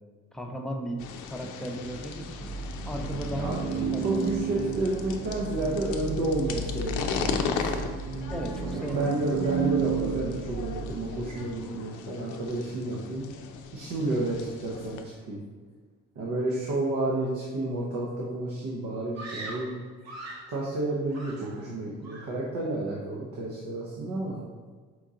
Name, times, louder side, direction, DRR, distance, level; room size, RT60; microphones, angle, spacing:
voice 1, 0.3-2.5 2.8-4.4 8.3-9.3, right 1 dB, ahead, 1 dB, 0.5 m, -36 dB
sound 1, 1.0-15.0, left 6 dB, 85° left, 0.5 m, -37 dB
sound 2, 2.0-11.4, right 6 dB, 45° right, 0.5 m, -33 dB
voice 2, 3.4-7.5 8.6-13.3 13.7-15.4 16.2-19.7 20.5-24.4, right 2 dB, 90° right, -4 dB, 0.8 m, -31 dB
Screaming, 19.1-20.6 21.1-21.8 22.0-22.5, right 1 dB, 60° right, 0.9 m, -41 dB
4.5 x 2.7 x 3.6 m, 1.5 s
cardioid pair, 90°, 30 cm